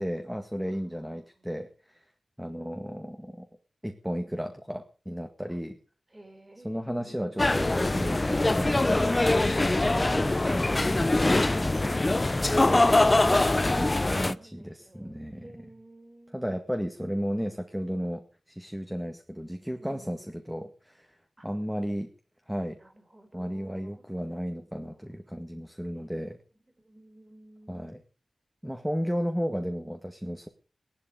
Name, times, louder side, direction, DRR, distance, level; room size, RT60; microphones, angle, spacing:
voice 1, 0.0-2.1 2.4-3.5 3.8-5.8 6.6-12.2 13.8-15.5 16.3-21.2 21.4-22.1 22.5-22.8 23.3-26.4 27.7-28.0 28.6-30.5, equal, 5° right, 6 dB, 2.0 m, -34 dB
voice 2, 0.7-1.4 5.5-5.6 6.1-7.4 13.3-16.4 19.8-20.3 21.4-21.5 22.8-24.0 25.8-26.2 26.8-28.0, right 1 dB, 25° right, 8 dB, 4.4 m, -53 dB
sound 1, 7.4-14.3, left 2 dB, 30° left, 0.7 m, -23 dB
17.5 x 11.5 x 5.1 m, 0.38 s
wide cardioid pair, 65°, 0 cm